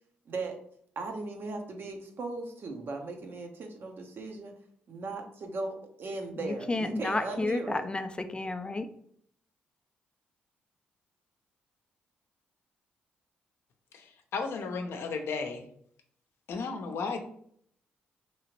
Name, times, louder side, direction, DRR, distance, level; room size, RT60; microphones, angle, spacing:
voice 1, 0.3-0.6 1.0-4.5 4.9-7.8, right 3 dB, 55° right, 3 dB, 0.8 m, -37 dB
voice 2, 6.4-8.9, left 2 dB, 20° left, 9 dB, 0.4 m, -31 dB
voice 3, 13.9-15.6 16.5-17.2, left 4 dB, 70° left, 5 dB, 0.6 m, -34 dB
3.0 x 2.8 x 2.9 m, 0.64 s
supercardioid pair, 55°, 4 cm